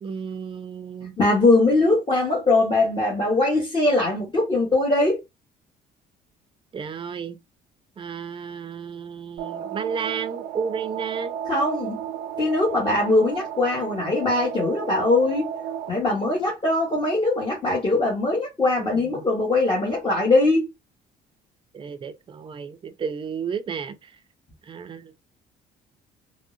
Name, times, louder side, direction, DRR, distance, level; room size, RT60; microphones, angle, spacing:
voice 1, 0.0-1.1 6.7-7.4 8.0-11.3 18.8-19.2 21.7-24.0 24.7-25.1, right 6 dB, 30° right, 0.5 m, -32 dB
voice 2, 1.2-5.2 11.5-12.0 12.4-15.5 15.9-20.7, left 2 dB, 30° left, 1.3 m, -21 dB
sound 1, 9.4-15.9, right 9 dB, 85° right, 0.5 m, -34 dB
3.5 x 2.1 x 2.6 m
cardioid pair, 110°, 17 cm